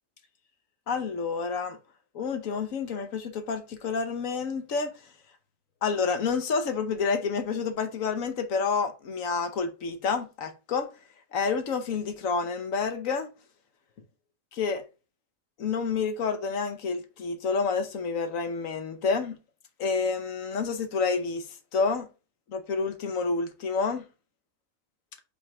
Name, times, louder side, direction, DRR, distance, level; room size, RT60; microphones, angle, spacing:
voice 1, 0.9-1.8 2.1-4.9 5.8-10.9 11.3-13.3 14.5-14.8 15.6-19.4 19.8-22.1 22.5-24.0, left 5 dB, 85° left, 1.3 m, -29 dB
5.3 x 3.7 x 4.8 m
omnidirectional pair, 1.3 m